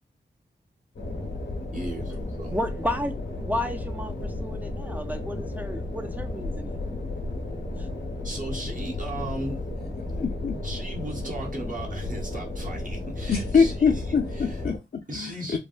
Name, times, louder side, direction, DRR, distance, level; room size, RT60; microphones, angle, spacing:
sound 1, 1.0-14.8, left 2 dB, 85° left, 1.0 m, -33 dB
voice 1, 1.7-2.6 8.2-9.6 10.6-14.0 15.1-15.6, right 1 dB, 45° right, 0.9 m, -36 dB
voice 2, 2.5-6.8 7.8-7.9, left 1 dB, 10° right, 0.4 m, -32 dB
voice 3, 10.2-10.6 13.3-15.6, left 5 dB, 55° left, 0.5 m, -24 dB
3.3 x 2.1 x 2.4 m
wide cardioid pair, 90°, 19 cm